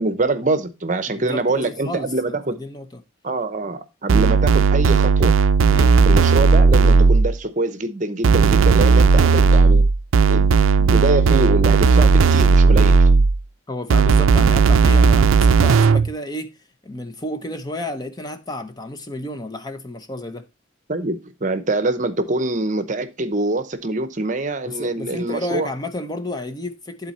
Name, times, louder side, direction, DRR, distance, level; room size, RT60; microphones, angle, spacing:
voice 1, 0.0-2.6 3.2-5.3 6.1-9.9 10.3-10.5 10.8-13.1 20.9-25.7, right 2 dB, 40° right, 0.8 m, -24 dB
voice 2, 1.1-3.0 5.7-6.0 13.7-16.5 16.8-20.4 24.7-27.1, left 1 dB, 20° left, 0.7 m, -31 dB
sound 1, 4.1-7.4 8.2-13.4 13.9-16.1, right 4 dB, 90° right, 0.4 m, -14 dB
11.0 x 4.0 x 4.2 m
head